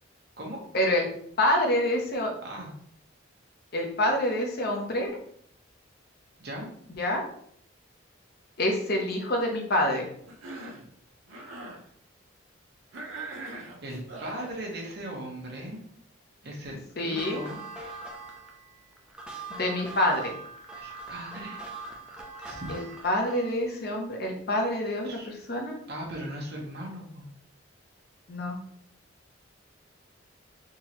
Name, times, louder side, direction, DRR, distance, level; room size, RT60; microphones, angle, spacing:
voice 1, 0.7-1.1 1.4-2.3 3.7-5.1 7.0-7.2 8.6-10.1 17.0-17.4 19.6-20.3 22.7-25.8 28.3-28.6, left 1 dB, 50° left, 1 dB, 0.7 m, -27 dB
Cough, 10.3-10.9 11.3-11.8 12.9-14.5, right 2 dB, 80° right, 0.8 m, -41 dB
voice 2, 13.8-15.8 16.4-17.6 20.7-21.6 22.4-22.8 25.0-25.3 25.9-27.3, right 1 dB, 55° right, -1 dB, 0.9 m, -38 dB
sound 1, 17.0-23.6, right 3 dB, 5° right, 0.4 m, -42 dB
3.7 x 2.9 x 2.9 m, 0.65 s
head